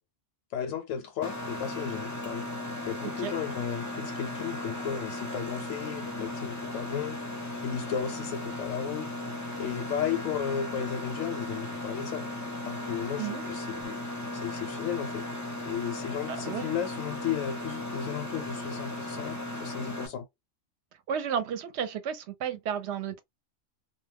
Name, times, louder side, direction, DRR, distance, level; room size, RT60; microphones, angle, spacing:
voice 1, 0.5-2.5 2.8-9.1 9.6-12.3 12.6-14.0 14.3-15.3 15.6-20.3, left 8 dB, 85° left, 1.0 m, -34 dB
Mechanisms, 1.2-20.1, left 1 dB, 25° left, 0.4 m, -36 dB
voice 2, 21.1-23.2, right 8 dB, 65° right, 0.8 m, -32 dB
2.2 x 2.1 x 3.3 m
omnidirectional pair, 1.3 m